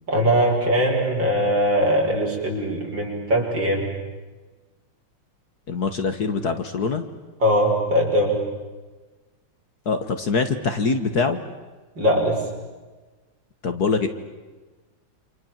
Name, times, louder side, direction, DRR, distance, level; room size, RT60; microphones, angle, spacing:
voice 1, 0.1-3.8 7.4-8.4 12.0-12.4, equal, 60° right, -1 dB, 6.9 m, -21 dB
voice 2, 5.7-7.0 9.9-11.4 13.6-14.1, left 4 dB, 50° left, 8 dB, 1.8 m, -23 dB
28.5 x 27.0 x 7.4 m, 1.3 s
omnidirectional pair, 2.3 m